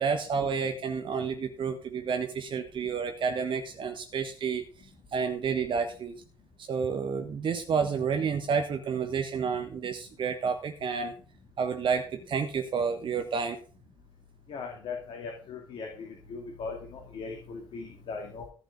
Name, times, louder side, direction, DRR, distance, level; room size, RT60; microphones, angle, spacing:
voice 1, 0.0-4.6 5.1-6.2 6.6-11.1 11.6-13.6, right 6 dB, 45° right, 5 dB, 1.4 m, -30 dB
voice 2, 14.5-18.4, left 4 dB, 50° left, 1 dB, 2.7 m, -39 dB
14.0 x 6.0 x 6.2 m, 0.40 s
figure-of-eight pair, 45°, 12 cm